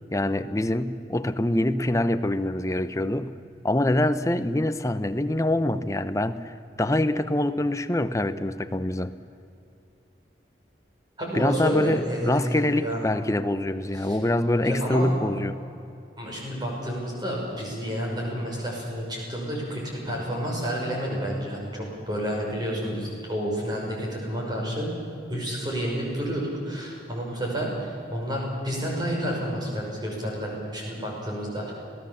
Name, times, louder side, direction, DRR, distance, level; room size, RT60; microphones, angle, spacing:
voice 1, 0.1-3.4 3.6-9.1 11.3-15.6, left 1 dB, 15° left, 11 dB, 0.7 m, -25 dB
voice 2, 11.2-13.0 13.9-14.2 14.6-15.1 16.2-24.9 25.3-31.7, equal, 20° right, -2 dB, 6.0 m, -30 dB
26.5 x 17.5 x 7.3 m, 2.6 s
head